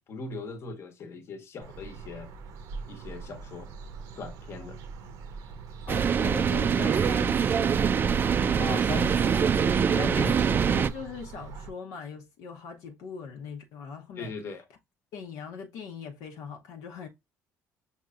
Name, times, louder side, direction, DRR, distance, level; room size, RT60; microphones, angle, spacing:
voice 1, 0.0-2.3 2.9-3.7 4.2-4.8 8.6-9.6 10.0-10.6 14.2-14.7, left 4 dB, 50° left, 1.1 m, -39 dB
sound 1, 1.6-11.7, right 5 dB, 75° right, 0.8 m, -42 dB
voice 2, 4.6-5.1 5.8-8.0 10.2-14.3 15.1-17.1, left 6 dB, 80° left, 0.9 m, -42 dB
sound 2, 5.9-10.9, right 7 dB, 35° right, 0.4 m, -24 dB
5.7 x 2.9 x 2.4 m
cardioid pair, 100°, 6 cm